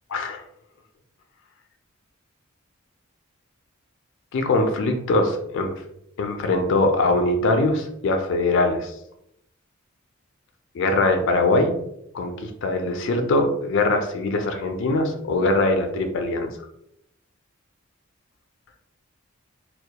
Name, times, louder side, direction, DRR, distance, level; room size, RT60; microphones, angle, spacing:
voice 1, 0.1-0.4 4.3-5.7 6.2-8.9 10.7-11.8 12.1-16.5, left 2 dB, 60° left, 5 dB, 0.4 m, -22 dB
2.2 x 2.0 x 2.8 m, 0.77 s
head